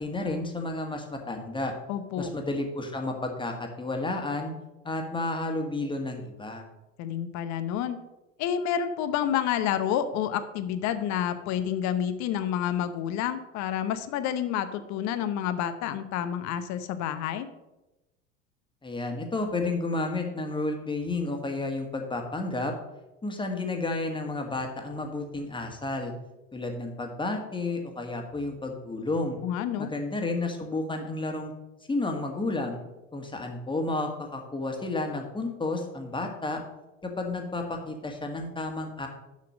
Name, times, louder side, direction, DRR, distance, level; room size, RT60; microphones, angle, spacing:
voice 1, 0.0-1.7 2.2-4.5 4.8-6.6 18.8-22.7 23.2-26.1 26.5-29.4 29.8-31.5 31.9-32.8 33.1-36.6 37.0-39.1, left 2 dB, 15° left, 3 dB, 1.7 m, -31 dB
voice 2, 1.9-2.3 7.0-8.0 8.4-17.5 29.4-29.9, left 9 dB, 45° left, 11 dB, 0.9 m, -29 dB
7.4 x 5.8 x 6.2 m, 0.99 s
hypercardioid pair, 80°, 38 cm